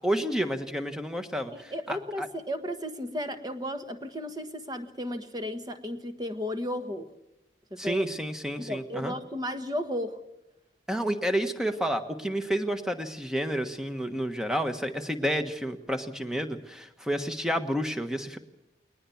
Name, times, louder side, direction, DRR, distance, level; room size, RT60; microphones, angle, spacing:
voice 1, 0.0-2.3 7.8-9.1 10.9-18.4, equal, 5° right, 7 dB, 1.3 m, -30 dB
voice 2, 1.7-7.1 7.7-8.1 8.6-10.2, equal, 20° right, 7 dB, 1.4 m, -34 dB
20.5 x 20.0 x 7.2 m, 0.91 s
head